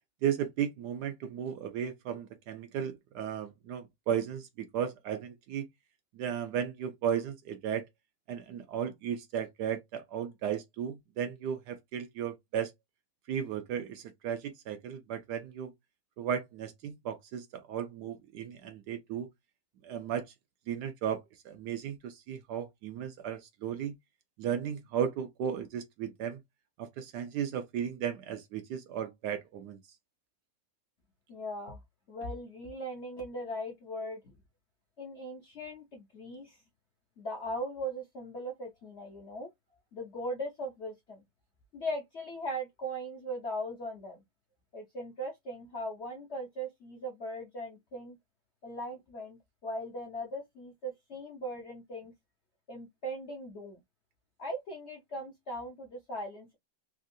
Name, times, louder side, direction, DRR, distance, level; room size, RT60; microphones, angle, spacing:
voice 1, 0.2-5.6 6.1-7.9 8.3-12.7 13.3-15.7 16.2-19.3 19.8-20.2 20.7-23.9 24.4-26.4 26.8-29.8, right 8 dB, 70° right, 1.1 m, -35 dB
voice 2, 31.3-31.8 32.1-34.2 35.0-36.6 37.2-39.5 39.9-41.2 41.7-44.2 44.7-48.2 48.6-52.1 52.7-53.8 54.4-56.6, equal, 55° left, 0.8 m, -39 dB
3.5 x 2.4 x 2.6 m
omnidirectional pair, 2.0 m